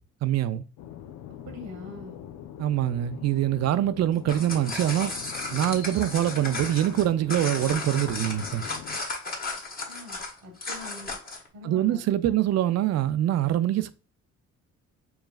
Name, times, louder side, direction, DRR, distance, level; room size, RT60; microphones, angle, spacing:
voice 1, 0.2-0.6 2.6-5.1 5.5-8.7 11.6-13.9, right 12 dB, 60° right, 0.4 m, -24 dB
sound 1, 0.8-9.0, left 10 dB, 90° left, 0.6 m, -43 dB
voice 2, 1.4-2.2 9.9-11.1 11.5-12.4, left 3 dB, 75° right, 1.3 m, -43 dB
sound 2, 4.1-11.5, left 3 dB, 30° left, 1.3 m, -34 dB
4.6 x 3.1 x 2.3 m
cardioid pair, 90°, 30 cm